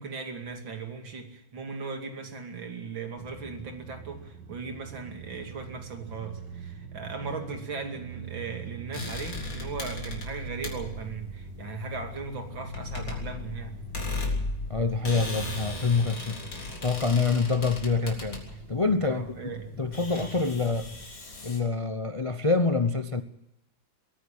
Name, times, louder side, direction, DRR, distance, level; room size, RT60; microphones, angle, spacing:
voice 1, 0.0-13.8 19.1-19.7, right 4 dB, 85° right, 3.3 m, -38 dB
sound 1, 3.2-21.0, right 3 dB, 65° right, 2.6 m, -43 dB
sound 2, 8.9-21.6, left 2 dB, 75° left, 4.4 m, -37 dB
voice 2, 14.7-16.4 16.8-19.3 19.8-20.9 21.4-23.2, left 4 dB, 35° left, 0.5 m, -26 dB
22.0 x 14.5 x 8.7 m
omnidirectional pair, 2.1 m